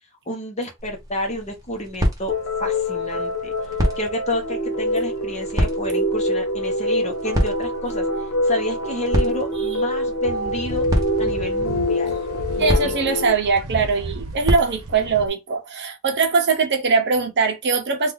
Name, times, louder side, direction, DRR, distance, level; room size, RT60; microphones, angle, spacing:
voice 1, 0.3-2.3 2.6-3.5 4.0-8.0 8.4-10.9 11.2-12.2 12.6-13.2, left 1 dB, 30° left, 0.9 m, -30 dB
sound 1, 0.8-15.3, equal, 15° right, 1.0 m, -29 dB
sound 2, 2.3-13.4, left 1 dB, 65° left, 0.6 m, -25 dB
sound 3, 10.2-15.3, right 2 dB, 85° right, 0.7 m, -34 dB
voice 2, 12.6-18.1, right 5 dB, 50° right, 0.7 m, -21 dB
2.7 x 2.4 x 3.8 m
head